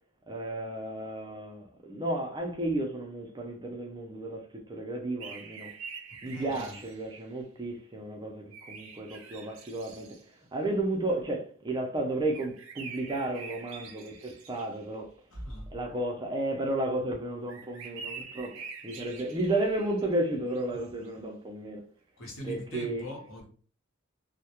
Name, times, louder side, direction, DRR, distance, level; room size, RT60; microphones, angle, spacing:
voice 1, 0.3-5.7 6.2-10.2 10.5-15.1 15.7-21.8 22.4-23.1, right 1 dB, 20° right, 0.4 m, -33 dB
sound 1, 5.2-7.3 8.5-10.2 12.3-15.0 17.5-20.2 20.5-21.1, right 5 dB, 80° right, 0.5 m, -45 dB
voice 2, 6.1-6.8 15.3-15.7 19.0-19.1 22.2-23.4, equal, 75° left, 0.9 m, -41 dB
2.2 x 2.1 x 2.8 m
head